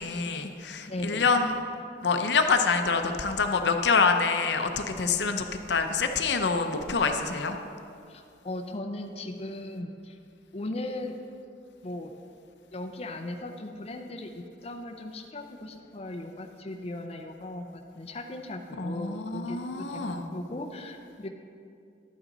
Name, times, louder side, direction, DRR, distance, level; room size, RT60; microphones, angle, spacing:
voice 1, 0.0-1.5 2.0-7.6 18.8-20.3, left 4 dB, 70° left, 6 dB, 0.7 m, -26 dB
voice 2, 0.9-1.3 8.1-10.2 10.5-11.1 11.8-12.1 12.7-20.0 20.3-21.3, left 1 dB, 35° left, 3 dB, 0.5 m, -38 dB
11.5 x 8.9 x 3.9 m, 2.5 s
head